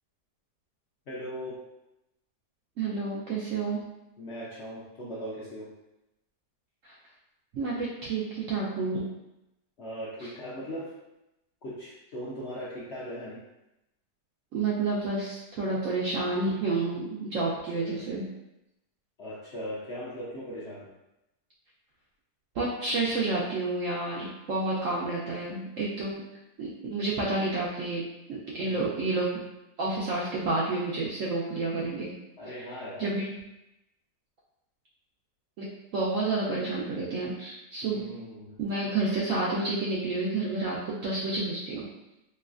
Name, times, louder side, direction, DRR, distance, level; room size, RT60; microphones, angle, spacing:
voice 1, 1.1-1.5 4.2-5.7 9.8-10.9 11.6-13.4 17.8-18.1 19.2-20.9 28.6-29.0 32.4-33.1 37.8-38.6, equal, 60° left, -8 dB, 0.7 m, -39 dB
voice 2, 2.8-3.8 6.8-6.9 7.5-9.1 10.2-10.3 14.5-18.3 22.5-26.2 26.6-28.0 28.3-29.5 29.8-32.1 33.0-33.3 35.6-35.7 35.9-38.0 38.6-41.9, right 3 dB, 70° right, -5 dB, 0.8 m, -30 dB
3.2 x 2.9 x 2.4 m, 0.91 s
omnidirectional pair, 1.8 m